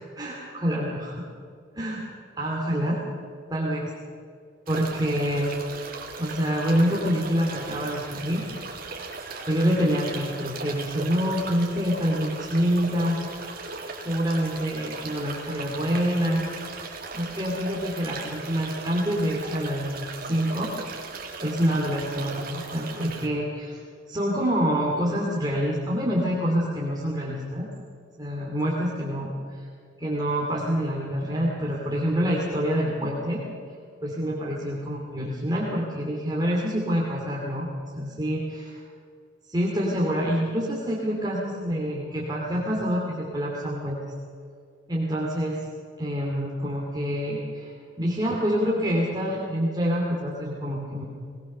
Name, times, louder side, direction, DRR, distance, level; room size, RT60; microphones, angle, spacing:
voice 1, 0.2-1.2 1.7-2.0 2.4-3.0 3.5-3.9 4.7-5.5 6.2-8.4 9.5-13.2 14.0-16.4 17.1-20.7 21.0-21.1 21.4-23.8 24.1-27.7 28.2-29.7 30.0-33.4 34.0-37.7 37.9-38.8 39.5-44.0 44.9-45.6 46.0-51.0, equal, 20° right, -4 dB, 2.8 m, -26 dB
sound 1, 4.7-23.3, right 4 dB, 50° right, 2.8 m, -38 dB
20.5 x 19.0 x 6.7 m, 2.2 s
head